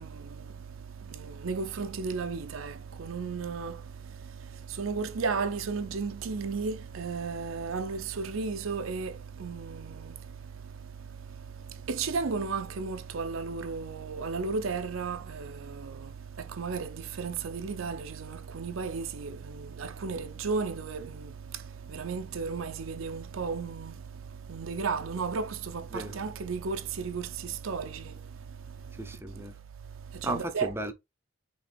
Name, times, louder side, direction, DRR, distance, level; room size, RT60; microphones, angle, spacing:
voice 1, 0.0-29.5 30.0-30.7, right 4 dB, 85° right, 0.6 m, -35 dB
voice 2, 29.0-29.6 30.2-30.9, right 2 dB, 10° right, 0.6 m, -34 dB
5.3 x 2.9 x 3.4 m
head